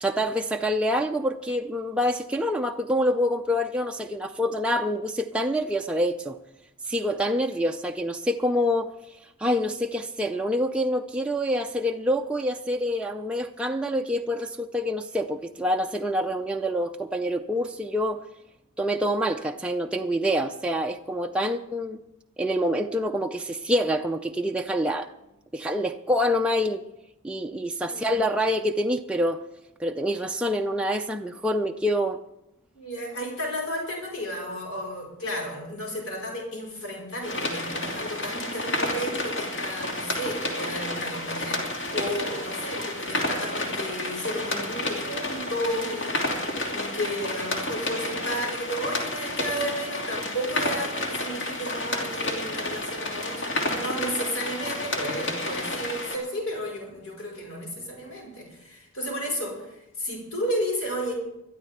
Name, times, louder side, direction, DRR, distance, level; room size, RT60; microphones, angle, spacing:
voice 1, 0.0-6.4 6.9-8.9 9.4-18.2 18.8-22.0 22.4-25.1 25.5-26.8 27.2-29.4 29.8-32.2, equal, 5° right, 2 dB, 0.4 m, -26 dB
voice 2, 32.7-61.1, equal, 75° left, -1 dB, 5.4 m, -33 dB
sound 1, 37.2-56.2, left 1 dB, 55° left, 2.8 m, -30 dB
22.0 x 12.5 x 3.6 m, 0.87 s
head